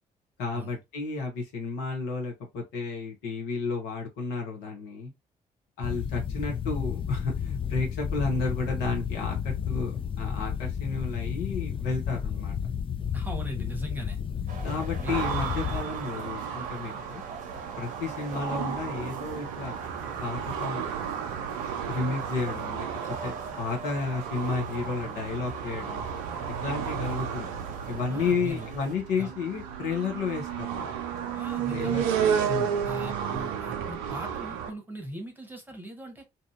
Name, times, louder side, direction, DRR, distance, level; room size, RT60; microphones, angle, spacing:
voice 1, 0.4-5.1 5.8-12.6 14.6-17.2 17.8-19.8 20.2-20.8 21.9-22.9 23.2-26.0 26.6-27.5 27.9-30.9 31.7-32.0 32.5-32.7, left 4 dB, 65° left, 0.9 m, -32 dB
sound 1, 5.8-15.8, left 8 dB, 30° left, 0.4 m, -32 dB
voice 2, 13.1-14.2 15.0-15.3 28.1-28.7 29.2-29.3 31.3-32.5 32.8-36.2, right 1 dB, 10° right, 1.1 m, -39 dB
sound 2, 14.5-29.0, right 4 dB, 40° right, 0.8 m, -44 dB
sound 3, 15.1-34.7, right 7 dB, 65° right, 0.4 m, -33 dB
2.8 x 2.5 x 2.4 m
figure-of-eight pair, 40°, 19 cm